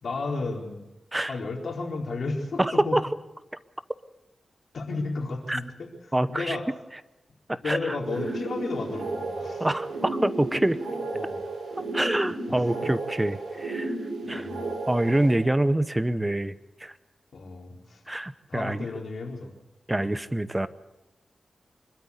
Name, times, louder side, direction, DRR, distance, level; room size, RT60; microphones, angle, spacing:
voice 1, 0.0-0.8 1.3-3.0 4.7-5.9 6.3-6.6 7.6-9.7 11.1-11.4 12.4-12.5 14.2-14.6 17.3-18.0 18.5-19.5 19.9-20.1, left 3 dB, 70° left, 1 dB, 4.2 m, -33 dB
voice 2, 2.6-3.0 5.5-5.6 6.1-6.6 7.5-8.0 9.6-10.8 11.9-13.9 14.3-14.5 14.9-16.5 16.8-16.9 18.1-18.9 19.9-20.7, right 1 dB, 15° right, 14 dB, 0.8 m, -26 dB
sound 1, 8.0-15.4, right 2 dB, 80° right, 5.7 m, -33 dB
25.0 x 13.0 x 8.3 m, 0.99 s
wide cardioid pair, 85°, 0 cm